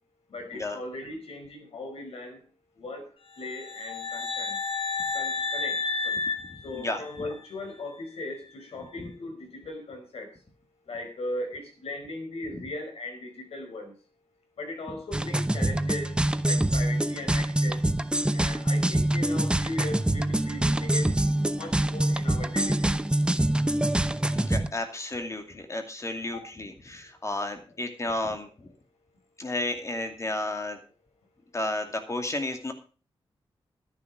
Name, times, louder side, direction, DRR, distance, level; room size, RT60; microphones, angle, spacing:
voice 1, 0.3-2.5 2.8-3.1 3.4-4.6 5.1-6.2 6.6-10.3 10.9-13.9 14.6-16.1 16.4-17.9 18.3-21.1 21.5-23.0 26.3-26.4, left 2 dB, 80° left, 4 dB, 4.9 m, -38 dB
sound 1, 3.4-7.4, left 4 dB, 65° left, 2.1 m, -31 dB
voice 2, 6.5-7.3 9.0-9.1 12.5-12.6 24.3-28.5 29.4-30.8 31.5-32.7, left 2 dB, 30° left, 6 dB, 2.4 m, -32 dB
sound 2, 15.1-24.7, right 1 dB, 10° right, 0.7 m, -25 dB
12.0 x 10.5 x 4.9 m, 0.37 s
wide cardioid pair, 105°, 10 cm